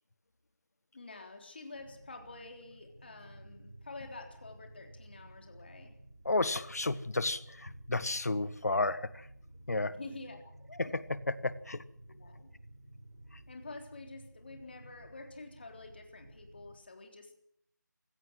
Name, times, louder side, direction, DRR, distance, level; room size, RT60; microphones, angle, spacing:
voice 1, 0.9-5.9 9.9-10.5 12.1-12.5 13.5-17.3, left 3 dB, 30° left, 4 dB, 3.6 m, -48 dB
sound 1, 1.7-16.8, right 1 dB, 65° right, 8.0 m, -54 dB
voice 2, 6.2-9.3 9.7-10.0 10.8-11.8, left 2 dB, 55° left, 15 dB, 1.6 m, -32 dB
24.0 x 16.5 x 7.7 m, 0.69 s
figure-of-eight pair, 175°, 10 cm